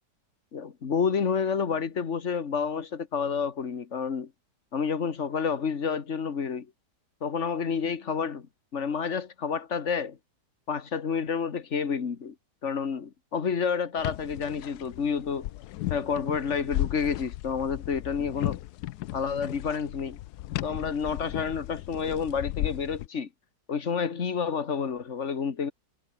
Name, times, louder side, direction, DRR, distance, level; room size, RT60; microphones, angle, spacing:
voice 1, 0.5-4.3 4.7-6.7 7.2-8.5 8.7-10.2 10.7-12.3 12.6-15.5 15.9-18.6 19.1-20.2 20.6-23.3 23.7-25.7, left 6 dB, 45° left, 1.8 m, -29 dB
sound 1, 14.0-23.1, left 15 dB, 75° left, 1.1 m, -35 dB
omnidirectional pair, 1.8 m